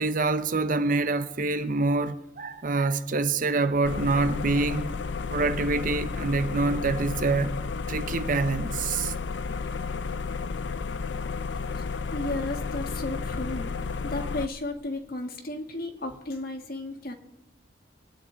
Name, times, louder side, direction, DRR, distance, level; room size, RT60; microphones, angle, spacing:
voice 1, 0.0-4.9 5.3-7.5 7.9-9.1, right 3 dB, 50° right, 0.7 m, -26 dB
sound 1, 3.8-14.5, left 4 dB, 80° left, 0.5 m, -32 dB
voice 2, 12.1-13.7 14.0-17.1, left 2 dB, 55° left, 1.7 m, -34 dB
24.0 x 9.5 x 3.9 m
head